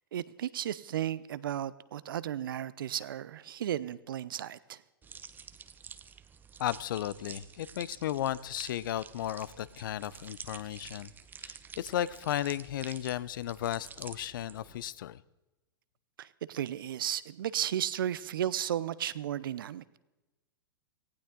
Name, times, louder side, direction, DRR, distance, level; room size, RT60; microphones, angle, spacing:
voice 1, 0.1-4.8 16.2-20.0, right 11 dB, 70° right, 18 dB, 0.7 m, -34 dB
sound 1, 5.0-14.9, right 6 dB, 15° right, 0.8 m, -49 dB
voice 2, 6.6-11.1 11.4-15.2, left 12 dB, 65° left, 20 dB, 0.6 m, -34 dB
18.5 x 15.5 x 3.8 m, 1.0 s
hypercardioid pair, 115°, 12 cm